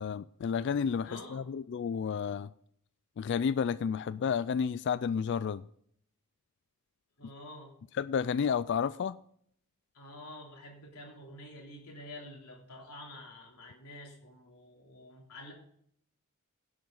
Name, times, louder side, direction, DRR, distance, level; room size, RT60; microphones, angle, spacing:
voice 1, 0.0-2.5 3.2-5.7 7.9-9.2, left 6 dB, 50° left, 0.3 m, -31 dB
voice 2, 1.0-1.4 7.2-7.7 9.9-15.5, left 1 dB, 85° left, 3.3 m, -48 dB
17.0 x 7.3 x 3.9 m
head